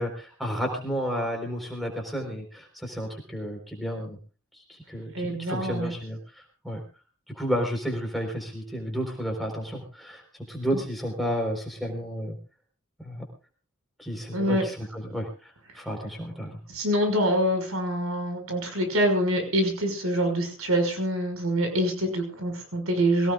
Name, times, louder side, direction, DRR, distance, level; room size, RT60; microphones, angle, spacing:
voice 1, 0.0-4.2 4.5-6.8 7.3-12.4 13.0-13.2 14.0-16.6, equal, ahead, 1 dB, 4.4 m, -32 dB
voice 2, 5.1-5.9 14.3-14.6 16.7-23.3, equal, 85° right, 5 dB, 6.0 m, -25 dB
23.0 x 18.5 x 2.5 m, 0.36 s
head